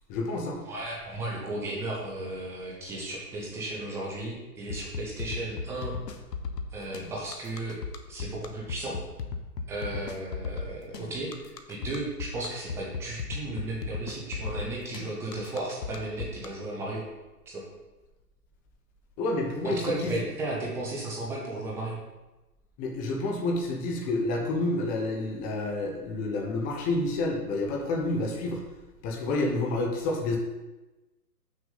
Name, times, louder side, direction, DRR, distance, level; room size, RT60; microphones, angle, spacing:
voice 1, 0.1-0.6 19.2-20.2 22.8-28.6 29.0-30.4, left 2 dB, 20° left, 1 dB, 0.9 m, -29 dB
voice 2, 0.7-5.9 6.7-7.8 8.1-9.0 9.7-17.1 17.5-17.6 19.6-22.0, right 2 dB, 5° right, -3 dB, 0.6 m, -35 dB
sound 1, 4.7-16.5, left 5 dB, 85° left, 1.0 m, -36 dB
6.8 x 6.3 x 3.9 m, 1.1 s
hypercardioid pair, 140°, 48 cm